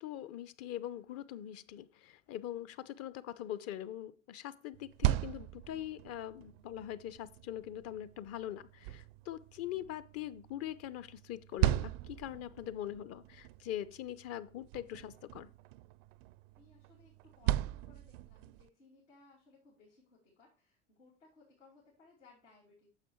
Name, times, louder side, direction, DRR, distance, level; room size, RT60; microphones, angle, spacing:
voice 1, 0.0-15.5, left 12 dB, 45° left, 0.7 m, -42 dB
sound 1, 4.7-18.7, right 15 dB, 60° right, 0.5 m, -39 dB
voice 2, 16.5-22.9, left 3 dB, 90° left, 2.8 m, -63 dB
9.2 x 7.0 x 3.1 m
hypercardioid pair, 85°, 35 cm